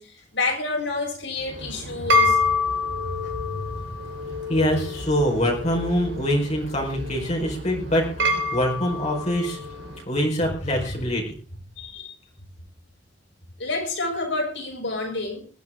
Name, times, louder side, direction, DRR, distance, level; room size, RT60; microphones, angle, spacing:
voice 1, 0.0-2.4 3.1-3.8 10.9-11.0 11.8-12.1 13.6-15.5, left 3 dB, 80° left, 6.9 m, -29 dB
sound 1, 1.5-10.0, left 3 dB, 85° right, 3.9 m, -27 dB
voice 2, 4.5-9.6 10.1-11.3, equal, 40° left, 4.7 m, -24 dB
20.0 x 13.5 x 3.7 m
head